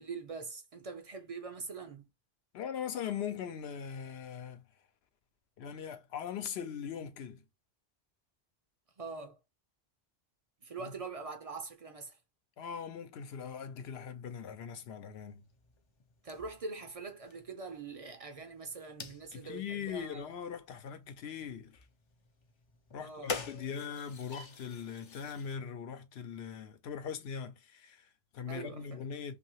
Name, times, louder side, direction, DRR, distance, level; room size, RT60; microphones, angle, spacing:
voice 1, 0.0-2.0 9.0-9.4 10.6-12.2 16.2-20.3 23.0-23.4 28.5-29.0, right 4 dB, 50° right, 0.4 m, -43 dB
voice 2, 2.5-4.6 5.6-7.4 10.8-10.9 12.6-15.4 19.3-21.8 22.9-29.4, left 7 dB, 80° left, 0.8 m, -41 dB
sound 1, 15.1-25.6, left 4 dB, 45° left, 0.3 m, -47 dB
2.7 x 2.4 x 2.9 m
omnidirectional pair, 1.1 m